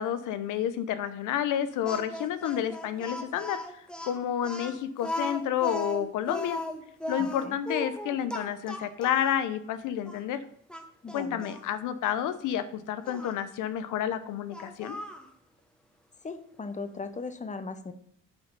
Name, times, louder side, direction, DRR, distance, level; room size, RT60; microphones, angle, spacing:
voice 1, 0.0-6.6 7.1-10.4 11.1-15.0, left 10 dB, 85° left, 12 dB, 0.8 m, -30 dB
Speech, 1.8-9.4 10.0-10.2 10.7-11.6 13.0-13.4 14.5-15.3, left 1 dB, 5° left, 1.3 m, -37 dB
voice 2, 7.2-7.6 11.0-11.4 16.2-17.9, left 4 dB, 25° left, 11 dB, 0.9 m, -38 dB
8.9 x 4.9 x 5.4 m, 0.67 s
cardioid pair, 90°, 30 cm